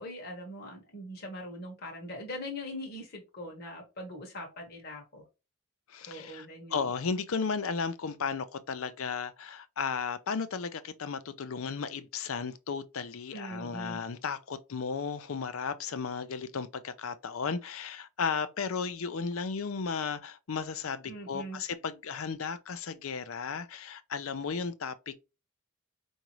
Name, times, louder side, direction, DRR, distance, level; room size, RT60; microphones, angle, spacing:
voice 1, 0.0-5.2 6.1-6.9 13.3-14.0 21.1-21.6, left 1 dB, 45° left, 1.1 m, -41 dB
voice 2, 5.9-25.2, left 5 dB, 70° left, 0.5 m, -34 dB
4.8 x 2.7 x 3.0 m
head